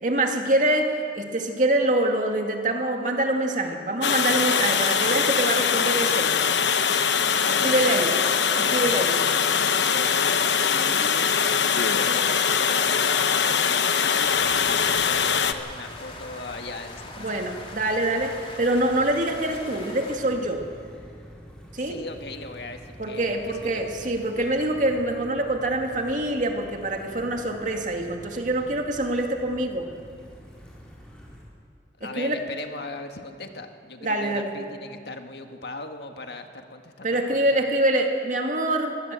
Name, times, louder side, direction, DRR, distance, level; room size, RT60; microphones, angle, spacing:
voice 1, 0.0-6.3 7.6-8.1 8.6-9.1 17.2-20.7 21.7-22.0 23.0-29.9 32.0-32.4 34.0-34.5 37.0-39.1, right 1 dB, 45° right, 3 dB, 2.2 m, -25 dB
Water, 4.0-15.5, left 7 dB, 80° left, 1.0 m, -22 dB
voice 2, 7.4-9.5 9.8-11.4 11.9-17.3 21.7-23.8 32.0-37.5, left 2 dB, 65° left, 5 dB, 1.7 m, -38 dB
sound 1, 12.5-20.2, left 3 dB, 30° left, 3.1 m, -42 dB
sound 2, 14.2-31.4, equal, 5° left, 5.1 m, -46 dB
24.5 x 17.5 x 7.7 m, 2.3 s
head